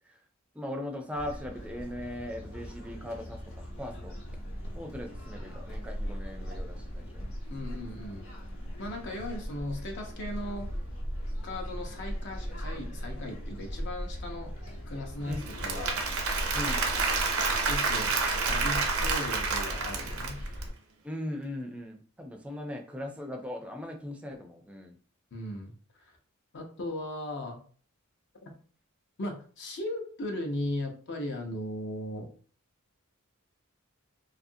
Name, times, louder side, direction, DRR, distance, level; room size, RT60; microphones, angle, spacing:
voice 1, 0.5-4.1 4.7-7.2 15.2-15.4 16.5-16.8 21.0-25.0, left 1 dB, 5° right, 4 dB, 0.4 m, -39 dB
sound 1, 1.1-20.7, equal, 85° left, 0.9 m, -38 dB
voice 2, 7.5-8.3 8.8-10.7 11.4-14.5 14.9-16.0 16.9-17.2 17.5-18.2 18.5-20.4 25.3-25.7 26.0-26.2 26.5-27.6 29.2-32.3, left 1 dB, 55° left, 2 dB, 0.6 m, -37 dB
Applause / Crowd, 15.3-20.6, right 4 dB, 80° right, 0.6 m, -29 dB
2.7 x 2.4 x 2.6 m, 0.43 s
head